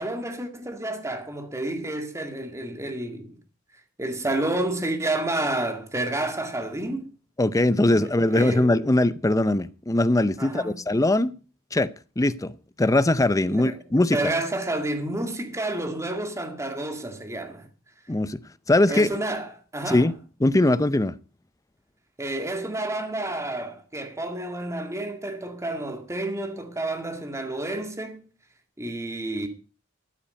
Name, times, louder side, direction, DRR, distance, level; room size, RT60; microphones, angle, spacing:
voice 1, 0.0-3.4 4.0-7.1 8.0-8.7 10.4-10.7 13.5-13.8 14.1-17.7 18.9-20.1 22.2-28.3 28.8-29.5, right 2 dB, 15° right, 1.9 m, -30 dB
voice 2, 7.4-11.3 11.7-14.3 18.1-18.4 18.7-19.1 19.9-21.2, left 1 dB, 15° left, 0.6 m, -21 dB
13.0 x 8.9 x 5.2 m
head